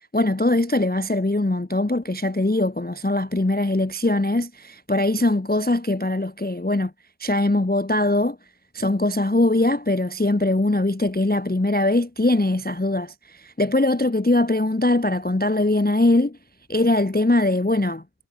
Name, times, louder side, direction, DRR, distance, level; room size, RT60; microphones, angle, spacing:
voice 1, 0.1-6.9 7.2-8.4 8.7-16.4 16.7-18.0, left 2 dB, 15° left, 0.4 m, -21 dB
omnidirectional pair, 1.4 m